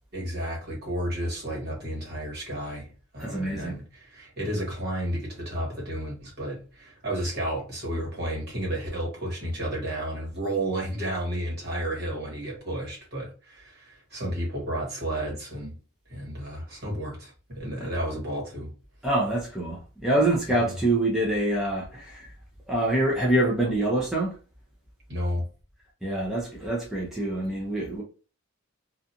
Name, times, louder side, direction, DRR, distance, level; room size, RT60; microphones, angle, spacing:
voice 1, 0.1-15.8 16.1-18.7 20.5-20.7 25.1-25.4, right 1 dB, 50° right, 1.3 m, -32 dB
voice 2, 3.2-3.8 19.0-22.3 22.7-24.3 26.0-28.0, right 1 dB, ahead, 0.5 m, -25 dB
2.5 x 2.4 x 2.7 m
head